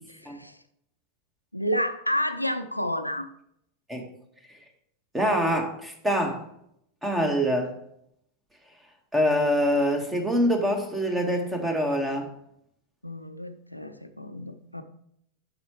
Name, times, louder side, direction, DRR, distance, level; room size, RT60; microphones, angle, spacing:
voice 1, 0.1-0.6 1.5-3.3 13.0-14.8, equal, 90° left, 9 dB, 0.7 m, -30 dB
voice 2, 5.1-6.4 7.0-7.7 9.1-12.3, equal, 10° right, 3 dB, 1.7 m, -25 dB
9.2 x 6.9 x 3.2 m, 0.71 s
figure-of-eight pair, 90°, 0 cm